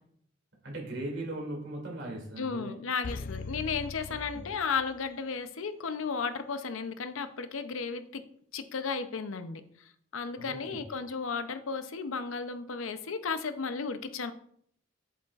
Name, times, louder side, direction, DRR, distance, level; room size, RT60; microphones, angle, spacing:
voice 1, 0.6-2.8 4.1-4.4 10.4-10.8, right 1 dB, 65° right, -1 dB, 2.6 m, -39 dB
voice 2, 2.4-8.2 8.5-9.6 10.1-14.3, left 5 dB, 85° left, 11 dB, 0.6 m, -34 dB
sound 1, 3.0-5.2 5.5-5.6, left 3 dB, 45° left, 0.4 m, -41 dB
7.9 x 7.6 x 2.4 m, 0.65 s
head